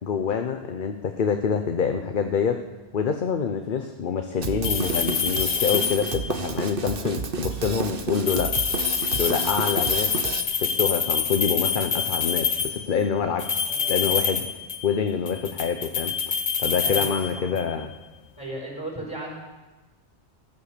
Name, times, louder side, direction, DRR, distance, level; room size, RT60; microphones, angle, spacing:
voice 1, 0.0-2.6 2.9-8.5 9.2-10.3 10.6-13.6 13.9-14.5 14.8-17.9, left 6 dB, 50° left, 6 dB, 0.9 m, -26 dB
Drum kit, 4.4-10.4, right 6 dB, 55° right, 1.1 m, -31 dB
sound 1, 4.6-6.4 8.1-12.9 13.4-15.0 15.3-17.7, left 6 dB, 75° left, 1.3 m, -26 dB
voice 2, 13.6-14.1 16.8-17.6 18.4-19.4, right 1 dB, 25° left, -1 dB, 5.5 m, -36 dB
15.0 x 12.0 x 6.7 m, 1.2 s
omnidirectional pair, 1.1 m